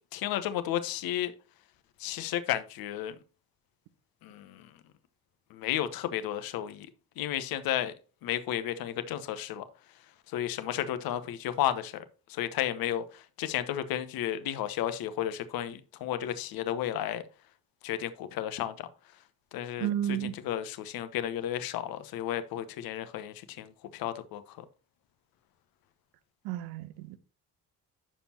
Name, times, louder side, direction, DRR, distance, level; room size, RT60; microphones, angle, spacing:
voice 1, 0.1-1.3 2.0-3.1 4.2-4.7 5.5-6.9 7.2-7.9 8.2-9.6 10.3-12.0 12.3-17.2 17.8-18.9 19.5-24.6, left 11 dB, 50° left, 0.9 m, -33 dB
voice 2, 19.8-20.4 26.4-27.2, right 11 dB, 55° right, 0.8 m, -32 dB
8.7 x 6.9 x 2.8 m
figure-of-eight pair, 45°, 46 cm